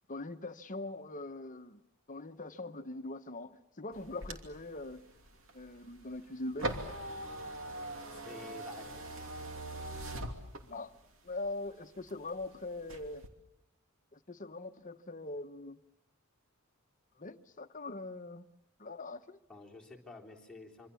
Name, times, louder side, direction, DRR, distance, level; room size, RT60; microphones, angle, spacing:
voice 1, 0.1-1.8 2.1-5.0 5.5-6.8 10.6-10.9 11.2-13.3 14.1-15.8 17.2-18.5 18.8-19.4, left 2 dB, 35° left, 1.1 m, -42 dB
sound 1, 3.9-11.0 11.5-12.4 12.8-13.3, right 1 dB, 65° right, 2.8 m, -42 dB
voice 2, 8.1-8.9 9.1-9.2 19.5-20.9, left 3 dB, 5° left, 3.6 m, -50 dB
26.5 x 25.0 x 7.1 m
head